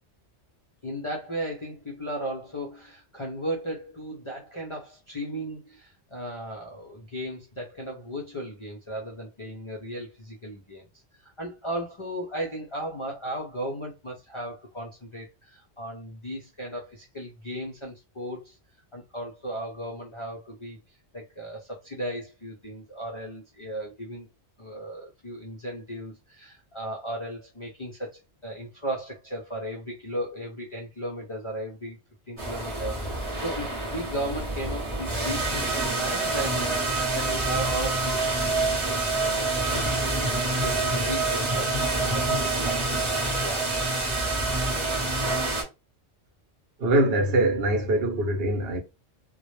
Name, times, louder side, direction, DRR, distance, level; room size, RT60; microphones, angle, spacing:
voice 1, 0.8-10.8 11.1-18.6 18.9-24.3 24.6-32.0 32.3-40.3 40.6-43.7, right 1 dB, 50° left, 0.4 m, -36 dB
sound 1, 32.4-45.6, right 2 dB, 30° right, 0.8 m, -27 dB
voice 2, 46.8-48.8, right 1 dB, 65° right, 0.8 m, -23 dB
2.1 x 2.0 x 3.0 m
omnidirectional pair, 1.1 m